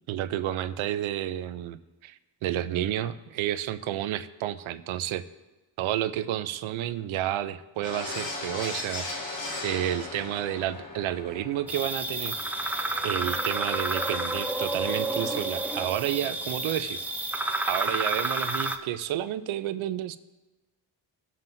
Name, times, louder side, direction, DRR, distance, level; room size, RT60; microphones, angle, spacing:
voice 1, 0.1-5.2 5.8-9.3 9.6-12.4 13.0-17.0 17.7-20.2, right 12 dB, 80° right, 13 dB, 0.7 m, -31 dB
sound 1, 7.8-16.9 17.2-17.4, left 2 dB, 40° left, 1.6 m, -39 dB
sound 2, 11.7-18.8, right 2 dB, 5° right, 0.5 m, -30 dB
18.5 x 7.5 x 2.7 m, 1.1 s
cardioid pair, 130°, 47 cm